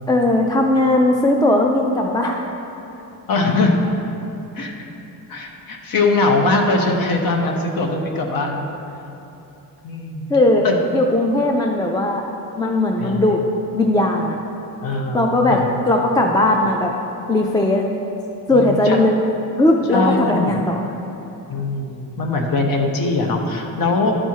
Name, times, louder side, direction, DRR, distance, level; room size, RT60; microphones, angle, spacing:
voice 1, 0.1-2.4 10.3-10.7 10.9-12.2 12.6-13.4 13.7-14.4 15.1-15.6 15.9-16.9 17.3-17.9 18.5-19.2 19.6-20.7, left 1 dB, 10° left, 2 dB, 0.3 m, -17 dB
voice 2, 3.3-3.8 4.5-4.7 5.3-8.6 9.8-10.3 10.6-10.8 13.0-13.2 14.8-15.7 18.5-19.0 19.9-20.7 21.5-24.2, left 3 dB, 75° left, 2 dB, 1.0 m, -21 dB
11.5 x 4.4 x 4.6 m, 2.9 s
wide cardioid pair, 155°, 35 cm